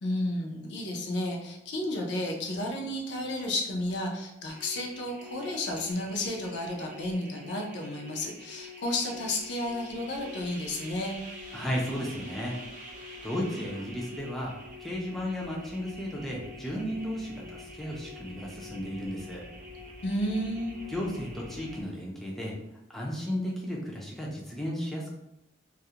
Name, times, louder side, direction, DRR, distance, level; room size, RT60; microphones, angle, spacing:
voice 1, 0.0-11.2 20.0-20.8, left 1 dB, 65° left, 1 dB, 0.5 m, -32 dB
sound 1, 4.5-21.8, left 1 dB, 50° right, 0.8 m, -46 dB
voice 2, 11.5-12.6 13.2-14.5 14.8-19.4 20.9-22.6 22.9-25.1, equal, ahead, -4 dB, 0.4 m, -34 dB
2.3 x 2.0 x 2.8 m, 0.87 s
head